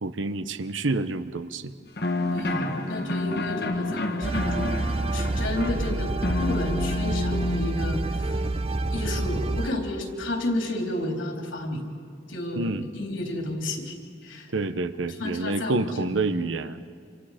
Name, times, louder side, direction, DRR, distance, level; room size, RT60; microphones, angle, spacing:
voice 1, 0.0-1.7 12.6-12.9 14.5-16.8, right 3 dB, 85° right, 11 dB, 0.9 m, -28 dB
sound 1, 2.0-7.7, left 2 dB, 55° left, 1.4 m, -29 dB
voice 2, 2.3-6.1 6.4-8.4 8.9-11.9 12.3-14.0 14.2-14.5 15.2-16.4, left 1 dB, 85° left, 1 dB, 3.8 m, -32 dB
sound 2, 4.2-9.7, right 2 dB, 30° right, 0.7 m, -28 dB
28.5 x 27.5 x 5.1 m, 2.2 s
head